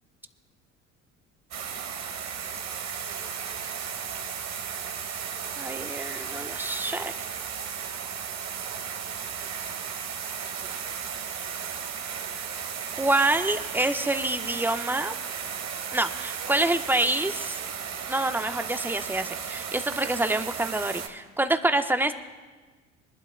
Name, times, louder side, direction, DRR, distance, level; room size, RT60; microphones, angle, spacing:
sound 1, 1.5-21.1, right 7 dB, 40° right, 1.6 m, -35 dB
voice 1, 5.6-7.1 13.0-15.1 15.9-17.6 18.1-22.1, right 2 dB, 5° right, 8 dB, 1.1 m, -27 dB
24.0 x 11.5 x 2.3 m, 1.4 s
figure-of-eight pair, 60°, 39 cm